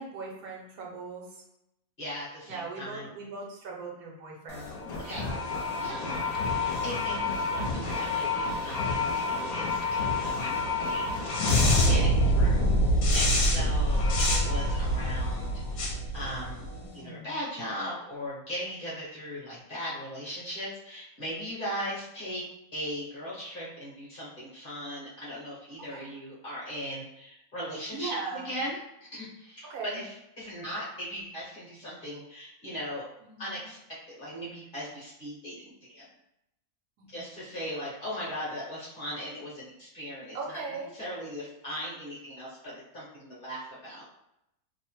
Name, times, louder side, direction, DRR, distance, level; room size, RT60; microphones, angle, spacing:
voice 1, 0.0-1.4 2.4-4.7 5.0-6.4 16.8-17.3 25.9-26.1 27.9-28.6 29.7-30.0 33.2-33.6 37.0-37.2 40.3-40.9, right 3 dB, 75° right, -2 dB, 1.1 m, -40 dB
voice 2, 2.0-3.1 5.0-5.3 5.8-6.2 6.5-11.0 11.4-12.7 13.1-16.7 16.9-22.4 22.7-33.0 33.4-33.8 34.1-36.0 37.1-44.0, equal, 40° left, -8 dB, 0.9 m, -38 dB
sound 1, 4.5-16.9, left 1 dB, 70° left, 1.0 m, -27 dB
2.8 x 2.0 x 2.9 m, 0.83 s
omnidirectional pair, 1.6 m